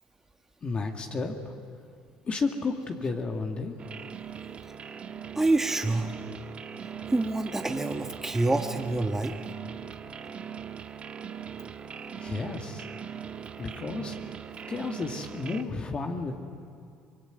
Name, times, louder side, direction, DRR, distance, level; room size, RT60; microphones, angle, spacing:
voice 1, 0.6-1.4 2.3-3.8 12.2-12.8 13.6-14.2 14.7-16.4, left 4 dB, 35° left, 3 dB, 2.1 m, -32 dB
sound 1, 3.8-15.6, right 7 dB, 40° right, 1.4 m, -40 dB
voice 2, 5.4-6.1 7.1-9.3, right 2 dB, 15° right, 4 dB, 1.4 m, -26 dB
25.0 x 21.0 x 9.5 m, 2.4 s
supercardioid pair, 80°, 3 cm